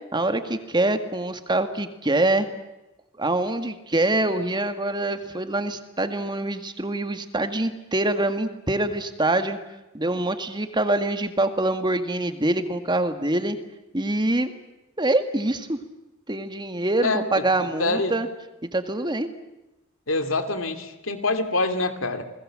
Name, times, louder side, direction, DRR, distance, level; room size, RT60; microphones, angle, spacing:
voice 1, 0.1-2.5 3.2-9.6 9.9-13.6 13.9-14.5 15.0-15.8 16.3-18.3 18.6-19.3, right 2 dB, 20° right, 8 dB, 1.9 m, -25 dB
voice 2, 17.6-18.1 20.1-22.2, left 2 dB, 70° left, 8 dB, 2.9 m, -25 dB
29.5 x 20.5 x 7.7 m, 0.99 s
head